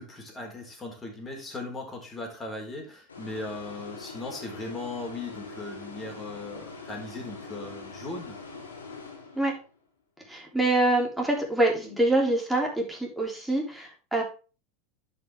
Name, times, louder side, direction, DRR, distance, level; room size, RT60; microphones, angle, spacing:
voice 1, 0.0-8.4, left 2 dB, 20° left, 1 dB, 4.2 m, -38 dB
sound 1, 3.1-9.8, left 4 dB, 85° left, 2.5 m, -43 dB
voice 2, 10.3-14.2, right 2 dB, 5° right, -1 dB, 3.3 m, -25 dB
11.0 x 5.5 x 3.5 m, 0.34 s
hypercardioid pair, 85°, 0 cm